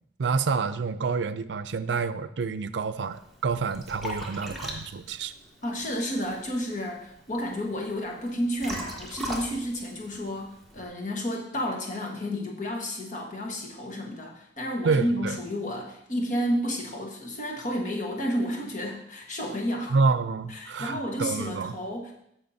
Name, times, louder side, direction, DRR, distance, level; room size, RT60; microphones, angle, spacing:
voice 1, 0.2-5.3 14.8-15.4 19.9-21.7, right 4 dB, 85° right, 13 dB, 0.5 m, -28 dB
Liquid, 3.1-10.9, equal, ahead, 1.2 m, -40 dB
voice 2, 5.6-20.0 20.5-22.1, equal, 45° left, 0 dB, 1.3 m, -31 dB
15.5 x 5.6 x 2.7 m, 0.75 s
head